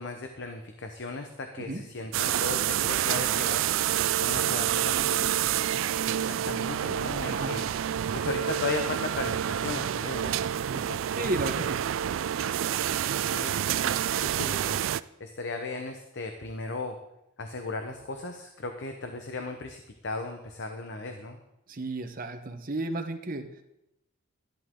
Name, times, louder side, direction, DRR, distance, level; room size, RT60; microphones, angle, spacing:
voice 1, 0.0-3.8 4.2-5.3 6.2-7.7 8.1-10.4 10.7-11.0 13.2-14.9 15.2-17.0 17.4-21.4, left 3 dB, 60° left, 5 dB, 0.9 m, -36 dB
sound 1, 2.1-15.0, right 10 dB, 65° right, 0.3 m, -28 dB
voice 2, 11.2-11.8 21.7-23.5, right 2 dB, 45° right, 6 dB, 1.1 m, -32 dB
13.0 x 11.0 x 3.8 m, 0.87 s
head